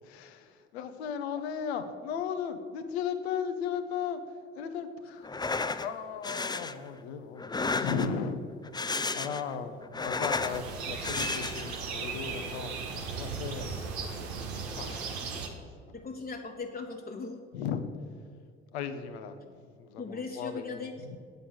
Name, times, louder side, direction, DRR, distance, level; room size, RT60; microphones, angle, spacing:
voice 1, 0.0-5.3 5.7-8.4 8.8-13.8 14.3-16.0 17.5-17.9 18.7-21.2, left 7 dB, 85° left, 8 dB, 0.9 m, -36 dB
sound 1, 5.2-5.9 6.2-6.7 7.4-8.3 8.6-9.5 9.8-10.6 11.0-11.8, left 3 dB, 15° left, 0.6 m, -32 dB
sound 2, 10.5-15.5, right 5 dB, 80° right, 1.3 m, -37 dB
voice 2, 15.9-17.4 20.0-20.9, left 4 dB, 30° left, 1 dB, 1.2 m, -38 dB
8.4 x 6.7 x 7.9 m, 2.2 s
hypercardioid pair, 55°, 32 cm